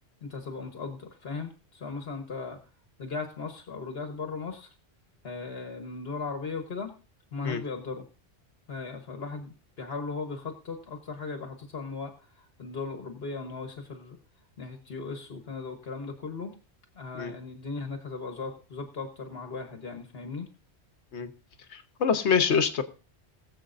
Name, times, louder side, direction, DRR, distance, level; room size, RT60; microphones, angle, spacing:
voice 1, 0.2-2.6 3.0-4.7 5.2-6.9 7.3-8.1 8.7-14.2 14.6-16.6 16.9-20.5, left 4 dB, 60° left, 4 dB, 1.4 m, -37 dB
voice 2, 21.7-22.8, left 6 dB, 80° left, 9 dB, 1.2 m, -25 dB
21.0 x 7.4 x 2.6 m, 0.34 s
omnidirectional pair, 1.1 m